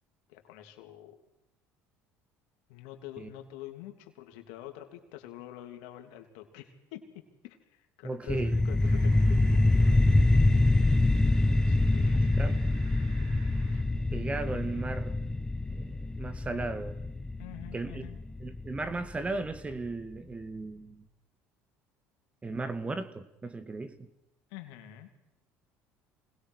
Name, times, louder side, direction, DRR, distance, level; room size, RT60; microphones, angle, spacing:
voice 1, 0.3-1.2 2.7-10.1 11.7-12.4 17.4-18.2 24.5-25.1, left 13 dB, 85° left, 5 dB, 3.0 m, -46 dB
voice 2, 8.0-8.6 12.1-12.6 14.1-15.2 15.7-17.0 17.7-18.1 18.4-21.0 22.4-24.1, right 3 dB, 20° right, 12 dB, 1.9 m, -36 dB
sound 1, 8.3-19.3, left 2 dB, 10° left, 1.0 m, -25 dB
sound 2, 8.8-13.8, right 3 dB, 50° right, 4.6 m, -55 dB
26.0 x 19.5 x 6.4 m, 0.85 s
supercardioid pair, 100°, 6 cm